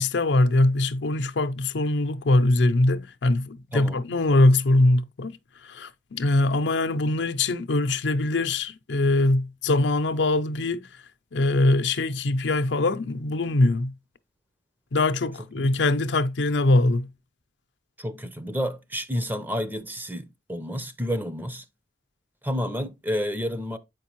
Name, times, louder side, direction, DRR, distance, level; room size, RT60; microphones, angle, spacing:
voice 1, 0.0-5.4 5.6-10.8 11.3-13.9 14.9-17.1, left 2 dB, 80° left, 0.6 m, -22 dB
voice 2, 3.7-4.0 15.4-15.6 18.0-21.6 22.4-23.8, equal, 10° right, 0.6 m, -30 dB
7.7 x 5.1 x 3.0 m
head